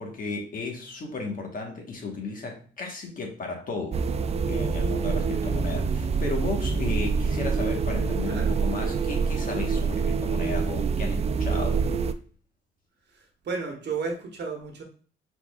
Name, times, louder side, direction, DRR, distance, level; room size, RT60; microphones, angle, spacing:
voice 1, 0.0-4.0 4.5-11.8, left 3 dB, 45° left, 2 dB, 1.3 m, -34 dB
sound 1, 3.9-12.1, right 5 dB, 35° right, 0.4 m, -26 dB
voice 2, 5.2-5.6 8.2-8.5 13.1-14.8, right 4 dB, 60° right, 2 dB, 1.2 m, -34 dB
4.5 x 4.1 x 2.3 m, 0.41 s
cardioid pair, 90°, 20 cm